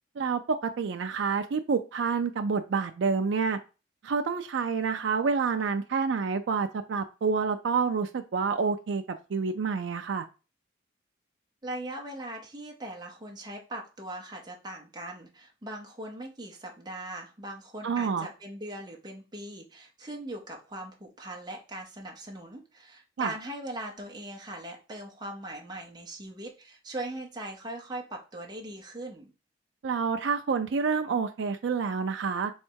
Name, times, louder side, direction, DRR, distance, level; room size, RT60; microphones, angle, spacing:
voice 1, 0.2-3.6 4.0-10.3 17.8-18.3 23.2-23.3 29.8-32.5, right 5 dB, 70° right, 0.4 m, -28 dB
voice 2, 11.6-29.3, right 1 dB, 20° right, 0.8 m, -40 dB
3.6 x 3.2 x 4.5 m
head